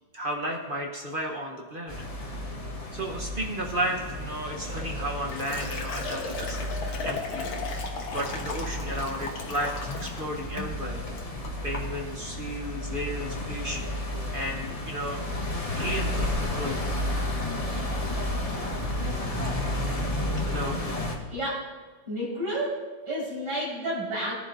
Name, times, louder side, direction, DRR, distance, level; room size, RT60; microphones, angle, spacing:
voice 1, 0.1-2.0 2.9-6.8 7.0-7.8 8.1-11.0 11.6-13.8 14.3-15.2 15.7-16.8 20.4-20.8, right 1 dB, 35° right, 0 dB, 0.8 m, -33 dB
sound 1, 1.9-21.2, left 1 dB, 25° left, 0.9 m, -32 dB
Liquid, 4.7-10.2 10.6-10.8 11.2-11.6, left 3 dB, 70° left, 2.0 m, -36 dB
voice 2, 21.3-21.7 22.1-22.8 23.1-24.3, right 1 dB, 80° right, -6 dB, 5.5 m, -30 dB
19.0 x 10.0 x 2.6 m, 1.3 s
omnidirectional pair, 2.3 m